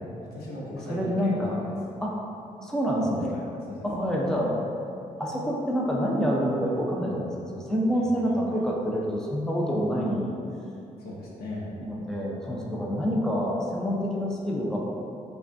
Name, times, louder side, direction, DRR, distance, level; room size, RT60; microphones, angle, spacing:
voice 1, 0.2-1.7 3.3-3.9 7.9-8.4 11.0-11.7, left 1 dB, 80° left, -5 dB, 0.8 m, -38 dB
voice 2, 0.7-1.6 2.0-2.2 2.6-3.4 3.8-4.6 5.2-10.3 11.8-14.8, equal, 5° left, -3 dB, 0.7 m, -27 dB
4.7 x 2.4 x 2.6 m, 2.6 s
supercardioid pair, 60°, 16 cm